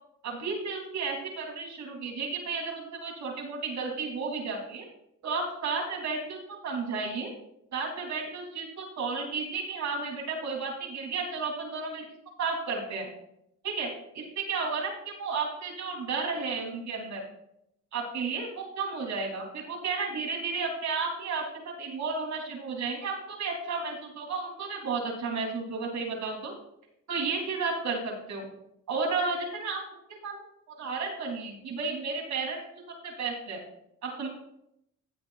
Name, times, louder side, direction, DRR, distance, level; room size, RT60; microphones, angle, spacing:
voice 1, 0.2-4.9 5.2-7.3 7.7-12.0 12.4-13.1 13.6-17.2 17.9-26.5 27.1-28.5 28.9-29.8 30.1-30.4 30.8-32.6 33.0-33.6 34.0-34.3, right 4 dB, 65° right, 0 dB, 3.2 m, -33 dB
16.5 x 7.8 x 2.4 m, 0.79 s
cardioid pair, 90°, 30 cm